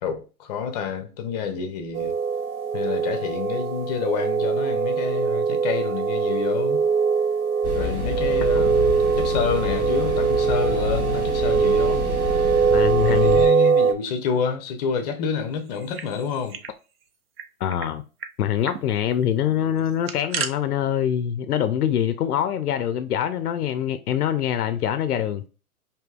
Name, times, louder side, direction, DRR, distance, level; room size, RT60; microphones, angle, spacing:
voice 1, 0.0-2.1 2.7-6.8 7.7-12.1 12.3-12.5 13.0-16.6, left 6 dB, 30° left, 0.6 m, -28 dB
sound 1, 1.9-13.9, right 6 dB, 60° right, 0.8 m, -22 dB
sound 2, 7.6-13.5, left 2 dB, 10° left, 1.0 m, -29 dB
voice 2, 12.7-13.4 17.6-18.0 18.4-25.5, left 10 dB, 80° left, 0.6 m, -24 dB
sound 3, 15.7-16.7 17.0-17.1 17.4-17.9 18.2-18.3 18.6-18.8 19.8-20.5, right 6 dB, 45° right, 0.5 m, -33 dB
5.1 x 2.7 x 2.3 m
hypercardioid pair, 130°, 45 cm